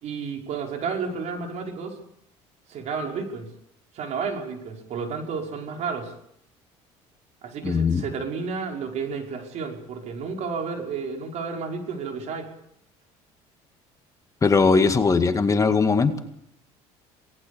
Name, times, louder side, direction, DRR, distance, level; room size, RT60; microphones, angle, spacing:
voice 1, 0.0-2.0 2.7-3.5 3.9-6.1 7.4-12.5, right 5 dB, 60° right, 2 dB, 5.4 m, -31 dB
voice 2, 7.6-8.0 14.4-16.2, left 4 dB, 25° left, 7 dB, 2.0 m, -20 dB
27.0 x 19.0 x 7.0 m, 0.73 s
supercardioid pair, 100°, 13 cm